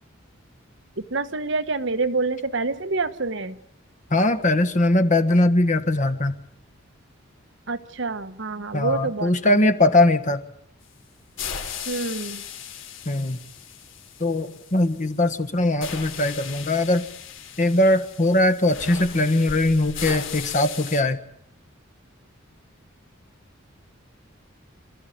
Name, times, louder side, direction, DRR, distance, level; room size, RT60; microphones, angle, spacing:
voice 1, 1.1-3.6 7.7-9.6 9.9-10.0 11.9-12.5, right 3 dB, 60° right, 10 dB, 1.1 m, -27 dB
voice 2, 4.1-6.3 8.7-10.4 13.0-13.4 14.2-17.1 17.6-21.2, left 1 dB, 35° left, 10 dB, 1.4 m, -20 dB
sound 1, 11.4-15.2 15.8-21.0, left 7 dB, 65° left, 3.0 m, -37 dB
27.0 x 14.0 x 9.2 m, 0.74 s
head